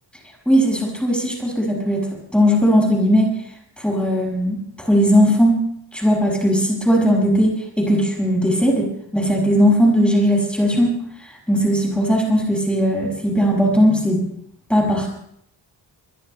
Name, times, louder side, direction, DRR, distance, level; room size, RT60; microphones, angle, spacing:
voice 1, 0.5-2.1 2.3-3.3 3.8-5.6 5.9-14.2 14.7-15.1, equal, ahead, -2 dB, 6.4 m, -18 dB
24.5 x 22.0 x 2.2 m, 0.70 s
wide cardioid pair, 150°, 43 cm